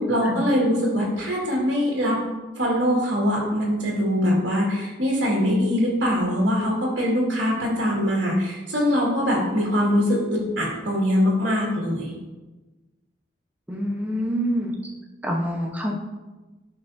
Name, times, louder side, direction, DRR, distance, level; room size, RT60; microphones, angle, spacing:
voice 1, 0.0-2.2 2.6-12.1, equal, 75° right, -4 dB, 2.0 m, -22 dB
voice 2, 13.7-14.7 15.2-15.9, equal, 10° right, -1 dB, 1.0 m, -26 dB
10.0 x 5.8 x 2.7 m, 1.2 s
head